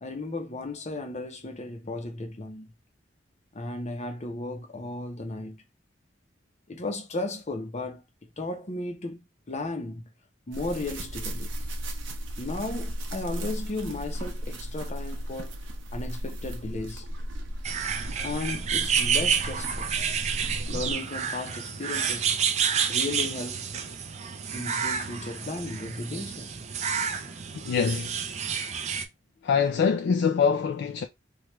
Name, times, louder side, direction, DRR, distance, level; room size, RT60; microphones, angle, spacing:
voice 1, 0.0-2.7 3.5-5.6 6.7-8.0 8.4-9.2 9.5-10.1 10.5-11.5 12.4-15.6 15.9-17.0 18.2-19.9 20.7-22.4 22.9-23.7 24.5-26.5, left 2 dB, 40° left, 0.7 m, -35 dB
sound 1, 10.5-20.9, equal, 85° right, 0.7 m, -35 dB
sound 2, 17.6-29.1, right 7 dB, 35° right, 0.4 m, -29 dB
voice 2, 27.6-28.2 29.4-31.0, left 6 dB, 65° left, 0.3 m, -24 dB
3.2 x 2.4 x 2.9 m
head